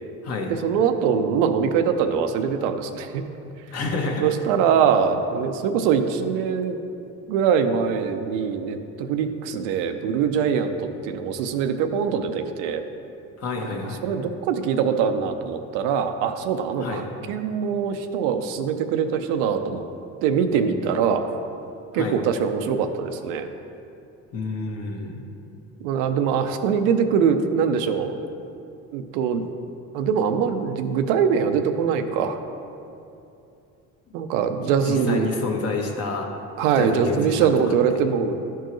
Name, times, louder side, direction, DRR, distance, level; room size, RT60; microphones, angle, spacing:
voice 1, 0.5-3.2 4.2-6.8 7.3-12.8 13.6-19.8 20.2-21.3 21.9-23.5 25.8-28.1 28.9-29.4 29.9-32.4 34.1-35.3 36.6-38.5, right 7 dB, 90° right, 8 dB, 0.6 m, -23 dB
voice 2, 3.7-4.3 13.4-14.2 16.8-17.0 21.9-22.2 24.3-25.3 34.8-36.3 36.7-38.0, left 3 dB, 45° left, 1 dB, 1.2 m, -29 dB
11.5 x 4.5 x 3.1 m, 2.7 s
supercardioid pair, 95°, 35 cm